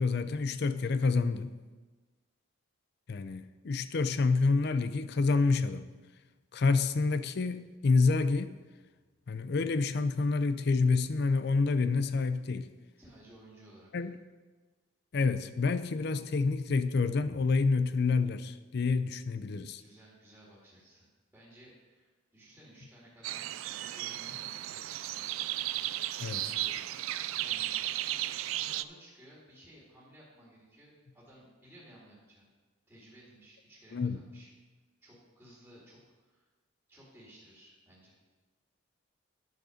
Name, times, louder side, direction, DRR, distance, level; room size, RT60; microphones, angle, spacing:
voice 1, 0.0-1.5 3.1-5.9 6.5-8.6 9.3-12.7 13.9-14.1 15.1-19.8 26.2-26.4 33.9-34.2, left 4 dB, 50° left, 12 dB, 0.4 m, -28 dB
voice 2, 13.0-14.1 19.8-21.1 21.3-25.2 26.2-27.0 27.4-27.7 28.6-32.5 32.9-34.5 35.0-36.5 36.9-38.2, right 1 dB, 5° right, -7 dB, 2.2 m, -57 dB
sound 1, 23.2-28.8, right 14 dB, 75° right, 0.3 m, -35 dB
10.5 x 6.3 x 5.0 m, 1.3 s
head